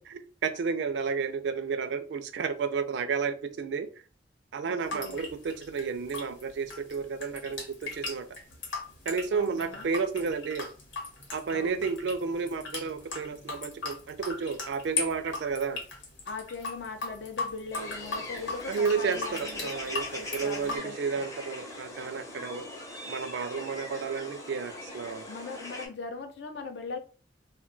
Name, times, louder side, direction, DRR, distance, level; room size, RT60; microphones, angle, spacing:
voice 1, 0.1-3.9 4.5-8.3 9.1-10.7 11.3-15.8 18.7-22.6 23.1-25.3, right 5 dB, 70° right, 0.4 m, -32 dB
voice 2, 4.7-5.3 9.3-9.9 11.5-11.8 16.3-21.3 25.3-27.0, left 4 dB, 65° left, 0.5 m, -40 dB
sound 1, 4.8-20.8, left 3 dB, 85° left, 1.0 m, -38 dB
sound 2, 17.7-25.9, left 1 dB, 20° left, 0.6 m, -41 dB
2.2 x 2.1 x 3.7 m
head